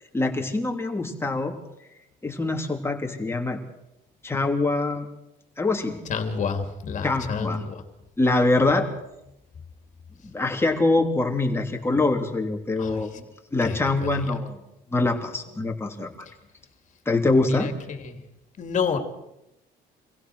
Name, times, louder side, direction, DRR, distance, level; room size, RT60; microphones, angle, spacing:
voice 1, 0.1-1.6 2.2-3.6 4.2-5.1 5.6-6.0 7.0-7.6 8.2-8.9 10.2-13.2 13.5-14.6 14.9-16.1 17.0-17.7, left 2 dB, 15° left, 2 dB, 3.3 m, -24 dB
voice 2, 6.1-7.8 12.8-13.2 13.6-14.2 17.4-17.7 18.0-18.2 18.6-19.0, left 6 dB, 45° left, 6 dB, 3.2 m, -29 dB
25.5 x 16.0 x 6.4 m, 0.87 s
cardioid pair, 110°, 17 cm